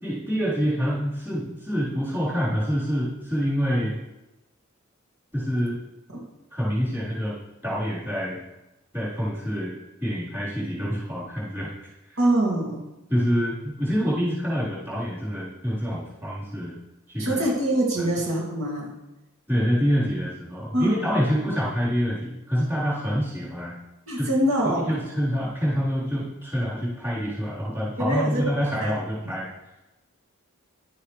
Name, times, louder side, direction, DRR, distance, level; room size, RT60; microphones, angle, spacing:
voice 1, 0.0-4.0 5.3-5.8 6.5-8.4 8.9-9.7 10.0-12.2 13.1-16.7 17.1-17.4 18.0-18.1 19.5-23.8 24.2-24.3 24.6-29.5, equal, 10° right, -8 dB, 3.9 m, -26 dB
voice 2, 12.2-12.8 17.2-18.9 20.7-21.1 24.1-24.9 28.0-28.4 28.8-28.9 29.2-29.3, right 1 dB, 70° right, -3 dB, 2.4 m, -24 dB
11.5 x 8.5 x 3.2 m, 0.98 s
head